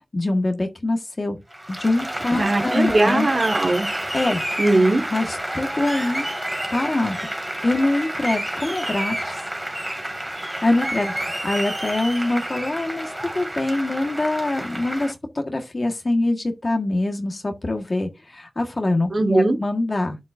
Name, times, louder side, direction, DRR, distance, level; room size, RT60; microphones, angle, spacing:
voice 1, 0.1-1.4 1.7-3.3 4.1-4.4 5.1-6.3 6.7-7.2 7.6-9.4 10.3-20.2, left 2 dB, 50° left, 1.6 m, -24 dB
Applause, 1.5-15.1, right 1 dB, 20° right, 2.6 m, -29 dB
voice 2, 2.4-3.9 4.6-5.0 19.1-19.6, right 2 dB, 65° right, 1.7 m, -19 dB
7.1 x 7.1 x 2.6 m
cardioid pair, 40°, 0 cm